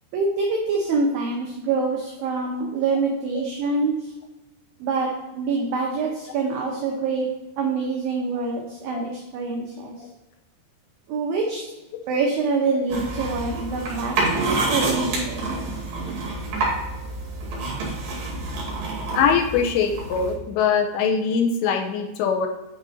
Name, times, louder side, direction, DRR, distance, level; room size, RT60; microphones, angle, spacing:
voice 1, 0.1-4.1 4.8-9.9 11.1-11.6 12.1-15.6, right 4 dB, 85° right, 0 dB, 2.0 m, -25 dB
sound 1, 12.9-20.3, right 2 dB, 55° right, 3.3 m, -28 dB
voice 2, 19.1-22.5, left 6 dB, 80° left, 3 dB, 2.8 m, -22 dB
8.9 x 4.1 x 4.0 m, 1.1 s
omnidirectional pair, 5.4 m